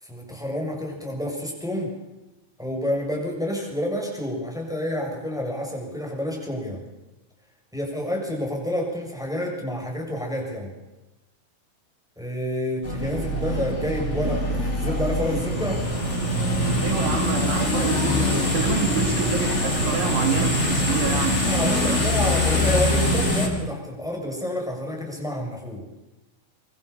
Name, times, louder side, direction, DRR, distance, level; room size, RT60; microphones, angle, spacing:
voice 1, 0.0-1.9 2.6-6.8 7.7-10.7 12.2-15.8 21.4-25.9, equal, ahead, 0 dB, 6.9 m, -29 dB
sound 1, 12.8-23.5, left 1 dB, 15° left, 4.7 m, -23 dB
voice 2, 16.8-22.0, right 5 dB, 85° right, 6 dB, 5.5 m, -28 dB
24.5 x 24.0 x 7.2 m, 1.0 s
omnidirectional pair, 5.3 m